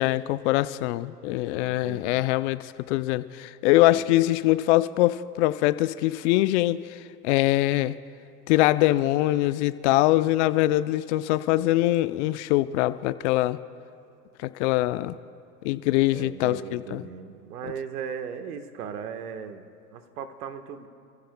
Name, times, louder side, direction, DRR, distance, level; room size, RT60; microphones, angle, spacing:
voice 1, 0.0-6.8 7.2-7.9 8.5-13.6 14.4-15.1 15.6-17.0, left 16 dB, 45° left, 14 dB, 0.7 m, -23 dB
voice 2, 1.5-2.2 3.9-4.2 16.1-20.9, right 7 dB, 70° right, 7 dB, 1.5 m, -38 dB
28.0 x 15.0 x 2.3 m, 2.5 s
hypercardioid pair, 110°, 47 cm